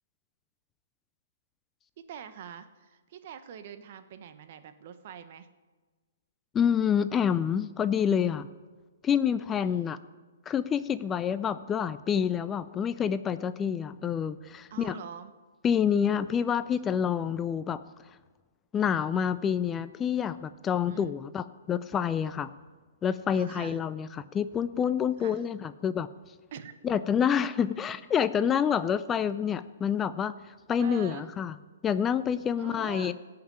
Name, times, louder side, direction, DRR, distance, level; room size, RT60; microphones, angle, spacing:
voice 1, 2.0-5.5 9.6-9.9 14.7-15.3 20.9-21.2 23.3-23.8 25.2-25.5 26.5-26.8 30.8-31.3 32.6-33.1, right 8 dB, 50° right, 10 dB, 1.1 m, -44 dB
voice 2, 6.5-8.5 9.0-10.0 10.5-15.0 15.6-17.8 18.7-22.5 23.0-26.1 26.8-30.3 30.7-31.5 31.8-33.1, left 8 dB, 20° left, 13 dB, 0.4 m, -27 dB
16.5 x 5.8 x 8.8 m, 1.4 s
hypercardioid pair, 130°, 0 cm